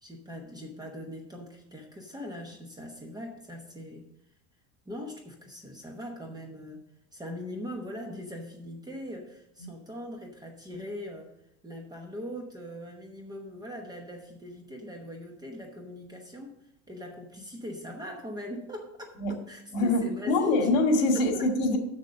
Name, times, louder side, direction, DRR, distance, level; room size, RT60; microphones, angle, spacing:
voice 1, 0.0-4.0 4.8-6.8 7.1-11.3 11.6-16.6 16.9-19.2 19.5-20.7 21.1-21.5, left 1 dB, 10° right, 2 dB, 1.0 m, -41 dB
voice 2, 19.7-21.8, left 2 dB, 65° left, 3 dB, 2.4 m, -24 dB
7.1 x 6.8 x 6.4 m, 0.78 s
cardioid pair, 165°, 38 cm